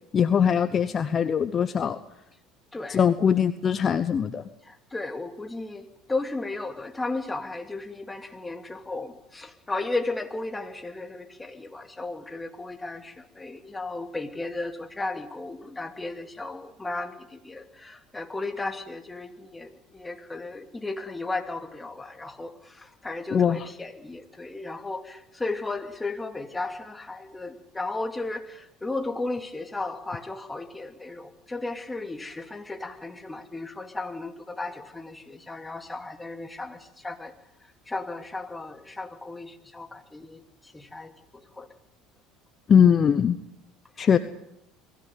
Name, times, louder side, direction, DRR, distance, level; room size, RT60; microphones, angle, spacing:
voice 1, 0.1-2.0 2.9-4.4 23.3-23.7 42.7-43.4 44.0-44.2, left 7 dB, 40° left, 13 dB, 1.1 m, -21 dB
voice 2, 4.7-36.8 37.0-37.3 37.9-40.4 40.7-41.1 41.6-41.7, left 2 dB, 15° left, 7 dB, 2.7 m, -35 dB
23.0 x 16.5 x 9.4 m, 0.80 s
hypercardioid pair, 80°, 0 cm